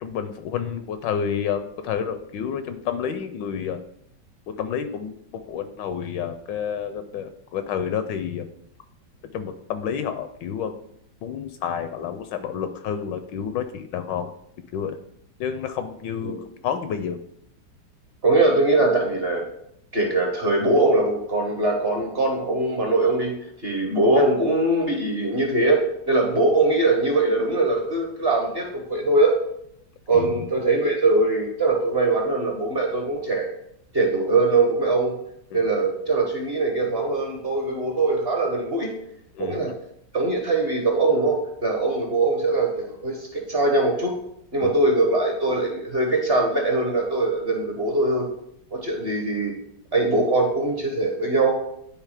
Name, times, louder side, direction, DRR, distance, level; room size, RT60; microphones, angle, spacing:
voice 1, 0.0-3.8 4.6-5.2 5.5-8.5 9.3-10.7 11.2-14.3 14.7-15.0 15.4-17.2 30.1-30.4 35.5-35.6 39.3-39.7 44.6-44.7, left 8 dB, 75° left, 9 dB, 1.1 m, -29 dB
voice 2, 18.2-19.4 19.9-23.3 23.6-25.8 26.1-29.3 30.1-33.5 33.9-35.1 35.5-38.9 39.4-39.7 40.1-44.1 44.5-48.3 48.7-49.5 49.9-51.6, right 2 dB, 40° right, 1 dB, 1.0 m, -22 dB
9.8 x 3.4 x 4.9 m, 0.74 s
omnidirectional pair, 2.2 m